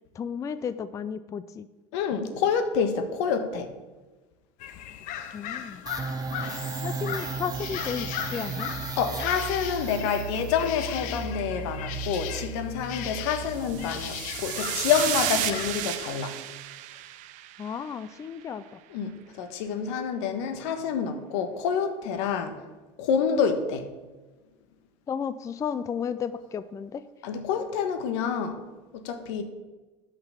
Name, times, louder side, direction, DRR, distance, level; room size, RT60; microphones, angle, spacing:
voice 1, 0.1-1.7 5.3-5.8 6.8-8.7 17.6-18.6 25.1-27.0, left 7 dB, 20° left, 14 dB, 0.4 m, -33 dB
voice 2, 1.9-3.7 6.4-6.8 9.0-16.3 18.9-22.6 23.0-23.9 27.2-28.6 28.9-29.4, left 7 dB, 80° left, 8 dB, 1.4 m, -28 dB
sound 1, 4.6-15.9, left 10 dB, 60° left, 0.9 m, -37 dB
sound 2, 5.9-14.3, right 5 dB, 25° right, 0.8 m, -36 dB
sound 3, 13.5-18.0, right 14 dB, 60° right, 0.7 m, -33 dB
8.8 x 5.9 x 7.1 m, 1.2 s
supercardioid pair, 120°, 15 cm